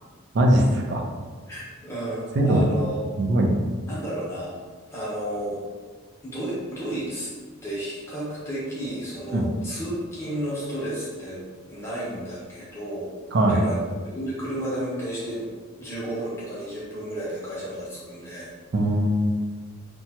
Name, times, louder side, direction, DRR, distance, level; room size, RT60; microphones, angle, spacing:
voice 1, 0.3-1.0 2.4-2.6 3.2-3.6 9.3-9.5 13.3-13.6 18.7-19.4, right 1 dB, 55° right, 1 dB, 0.4 m, -20 dB
voice 2, 1.5-3.0 3.9-4.5 4.9-5.6 6.2-7.3 7.6-11.4 11.7-13.1 13.5-13.8 14.1-15.5 15.8-18.5, right 1 dB, 10° left, -9 dB, 0.8 m, -32 dB
2.8 x 2.2 x 2.8 m, 1.5 s
head